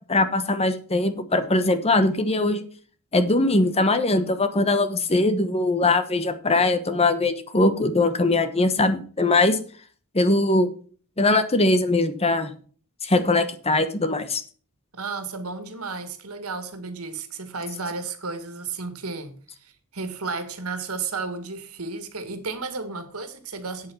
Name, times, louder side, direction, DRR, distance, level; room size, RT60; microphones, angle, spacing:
voice 1, 0.1-2.6 3.1-9.6 10.1-10.7 11.2-12.5 13.0-14.4, left 2 dB, 30° left, 1.1 m, -21 dB
voice 2, 14.9-23.9, right 4 dB, 80° right, 1.9 m, -33 dB
8.5 x 8.3 x 6.2 m
head